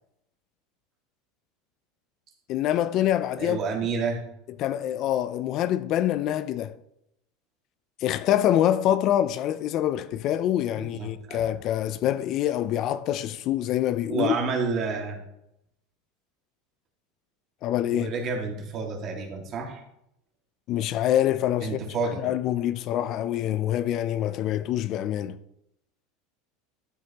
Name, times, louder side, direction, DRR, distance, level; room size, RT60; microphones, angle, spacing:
voice 1, 2.5-3.6 4.6-6.7 8.0-14.3 17.6-18.1 20.7-21.8 22.2-25.4, left 12 dB, 40° left, 0.4 m, -25 dB
voice 2, 3.4-4.2 10.7-11.4 14.1-15.2 17.9-19.8 21.6-22.2, right 4 dB, 35° right, 2.0 m, -29 dB
12.5 x 8.1 x 2.9 m
supercardioid pair, 160°, 0 cm